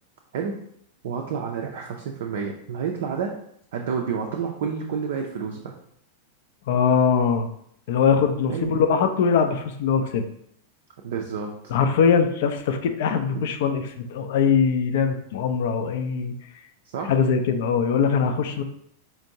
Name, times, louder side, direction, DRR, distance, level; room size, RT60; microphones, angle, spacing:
voice 1, 1.0-3.4 3.7-5.7 8.5-8.8 11.0-11.5 13.3-13.5 16.8-17.1, right 6 dB, 55° right, 1 dB, 0.4 m, -29 dB
voice 2, 6.7-7.5 7.9-10.2 11.7-16.3 17.1-18.6, left 6 dB, 55° left, 7 dB, 0.4 m, -22 dB
4.4 x 2.5 x 2.8 m, 0.70 s
figure-of-eight pair, 90°, 0 cm